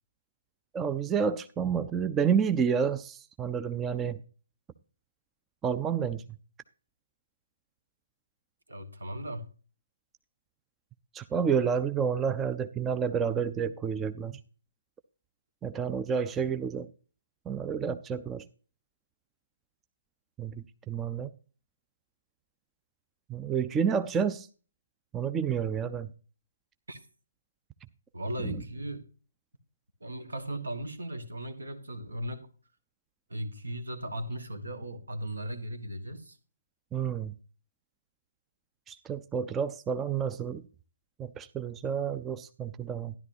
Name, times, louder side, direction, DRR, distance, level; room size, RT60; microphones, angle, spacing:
voice 1, 0.7-4.2 5.6-6.2 11.1-14.4 15.6-16.9 17.5-18.4 20.4-21.3 23.3-24.5 25.1-26.1 36.9-37.3 38.9-40.6 41.2-43.1, right 7 dB, 15° right, 0.4 m, -29 dB
voice 2, 8.7-9.5 26.9-27.0 28.1-29.0 30.0-32.5 33.3-36.4, right 1 dB, 70° right, 1.6 m, -37 dB
13.0 x 11.0 x 2.7 m
figure-of-eight pair, 135°, 0 cm